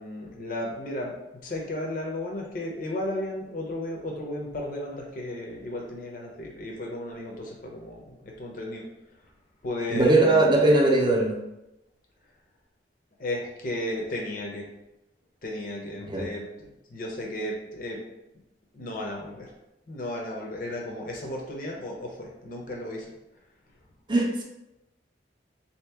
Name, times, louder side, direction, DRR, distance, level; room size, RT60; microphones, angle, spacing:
voice 1, 0.0-8.8 9.6-10.5 13.2-14.7 15.4-18.0 18.7-19.5 19.9-23.1, left 1 dB, 50° left, -1 dB, 0.7 m, -34 dB
voice 2, 9.9-11.4 16.1-16.2 24.1-24.4, right 2 dB, 25° right, -1 dB, 0.6 m, -20 dB
3.7 x 2.8 x 3.5 m, 0.91 s
head